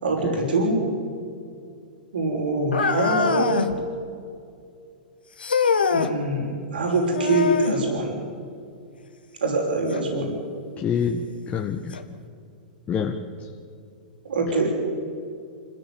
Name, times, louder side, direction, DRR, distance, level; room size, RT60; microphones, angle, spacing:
voice 1, 0.0-0.9 2.1-3.7 5.9-8.2 9.4-10.4 14.2-14.7, right 2 dB, 80° right, 0 dB, 6.1 m, -24 dB
sound 1, 2.7-3.8 5.4-6.1 7.1-7.8 9.9-10.0 10.9-11.0 11.9-12.0, left 5 dB, 90° left, 1.6 m, -23 dB
voice 2, 10.8-12.0 12.9-13.2, left 6 dB, 25° left, 3 dB, 1.6 m, -26 dB
26.5 x 15.0 x 9.6 m, 2.4 s
hypercardioid pair, 115°, 5 cm